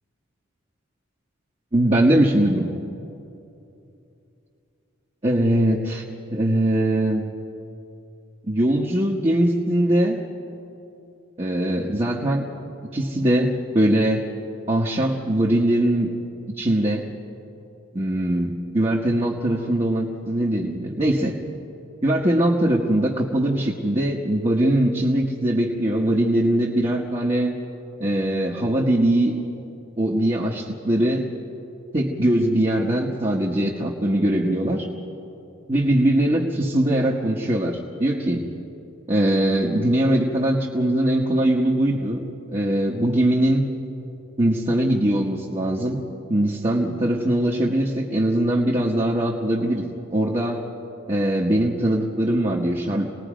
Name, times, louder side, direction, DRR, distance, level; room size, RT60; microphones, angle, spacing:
voice 1, 1.7-2.8 5.2-6.0 6.3-7.3 8.5-10.2 11.4-12.5 12.9-14.2 14.7-16.1 16.6-17.1 17.9-21.3 22.0-27.5 28.0-29.4 30.0-31.3 31.9-34.9 35.7-38.5 39.1-42.2 42.5-43.7 44.4-46.0 46.3-49.8 50.1-50.6 51.1-53.1, right 1 dB, 30° right, -3 dB, 1.2 m, -21 dB
28.0 x 19.0 x 5.1 m, 2.8 s
head